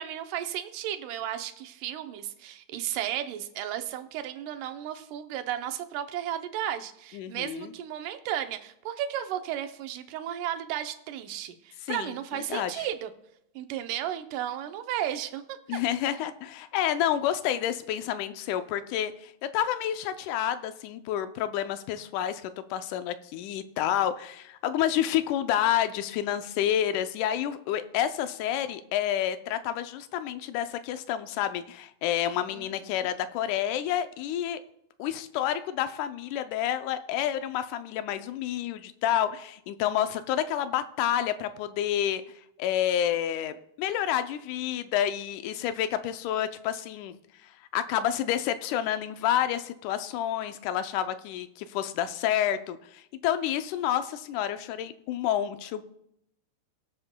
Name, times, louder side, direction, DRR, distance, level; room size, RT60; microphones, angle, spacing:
voice 1, 0.0-13.1 13.6-15.8 32.5-33.1, right 11 dB, 75° right, 8 dB, 2.1 m, -34 dB
voice 2, 7.1-7.7 11.9-12.1 12.5-12.9 15.7-34.6 35.0-42.2 42.6-47.1 47.7-55.8, left 11 dB, 80° left, 10 dB, 1.9 m, -29 dB
22.0 x 7.4 x 2.2 m, 0.77 s
omnidirectional pair, 4.0 m